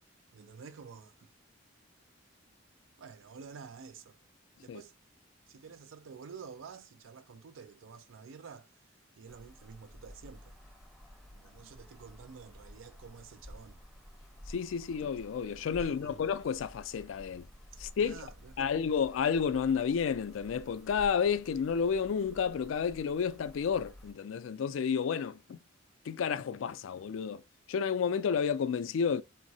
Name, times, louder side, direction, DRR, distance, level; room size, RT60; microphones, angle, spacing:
voice 1, 0.3-1.3 3.0-4.2 4.6-4.9 5.5-8.7 9.2-10.6 11.3-13.8 15.8-16.2 17.7-18.7, right 6 dB, 75° right, 0.4 m, -50 dB
sound 1, 9.3-24.1, equal, ahead, 0.6 m, -52 dB
voice 2, 14.5-17.4 17.8-18.2 18.6-25.6 26.1-27.4 27.7-29.2, left 6 dB, 70° left, 0.3 m, -31 dB
3.6 x 2.0 x 2.6 m
head